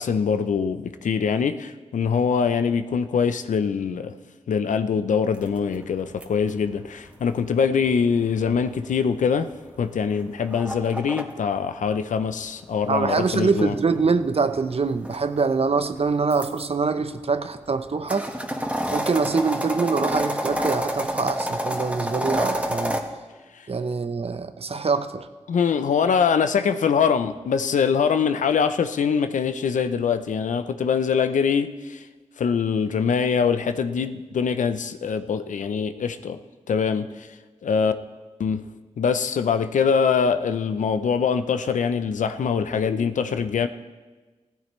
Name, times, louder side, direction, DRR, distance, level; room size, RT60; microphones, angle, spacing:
voice 1, 0.0-4.1 4.5-9.5 9.8-13.7 25.5-32.0 32.4-36.4 36.7-37.3 37.6-37.9 38.4-38.6 39.0-43.7, left 6 dB, 85° left, 10 dB, 0.6 m, -23 dB
sound 1, 5.3-11.2 12.5-16.6 17.2-23.0, equal, 10° right, 1.8 m, -30 dB
voice 2, 12.9-18.3 18.9-23.0 23.7-25.3, right 4 dB, 50° right, 10 dB, 0.8 m, -24 dB
16.0 x 14.0 x 3.2 m, 1.3 s
cardioid pair, 45°, 13 cm